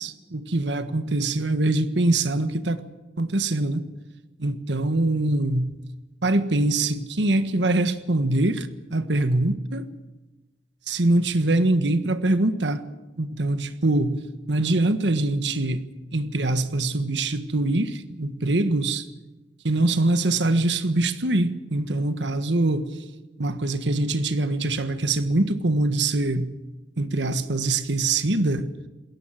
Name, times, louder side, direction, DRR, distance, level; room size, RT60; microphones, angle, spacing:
voice 1, 0.0-2.8 3.2-3.8 4.4-5.7 6.2-9.9 10.9-12.8 13.2-14.2 14.5-15.8 16.1-19.0 19.6-22.9 23.4-26.6 27.0-28.7, right 2 dB, 75° right, 1.5 m, -23 dB
21.5 x 17.5 x 7.7 m
head